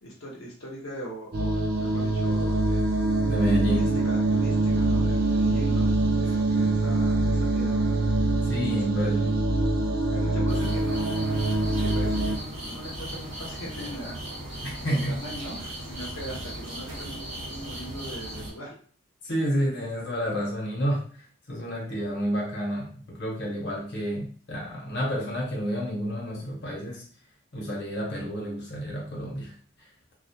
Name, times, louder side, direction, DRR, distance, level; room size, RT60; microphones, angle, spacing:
voice 1, 0.0-3.0 3.7-8.0 8.7-9.3 10.1-11.5 11.8-14.2 14.4-14.5 14.8-18.7, equal, 80° left, -3 dB, 0.7 m, -40 dB
sound 1, 1.3-12.4, right 2 dB, 50° right, 0.4 m, -24 dB
voice 2, 3.3-3.9 6.5-6.7 8.5-9.3 14.6-15.2 19.2-21.1 21.5-27.0 27.5-29.5, equal, 55° left, -3 dB, 0.8 m, -30 dB
sound 2, 10.5-18.5, right 1 dB, 80° right, 0.8 m, -37 dB
2.3 x 2.0 x 2.8 m, 0.43 s
head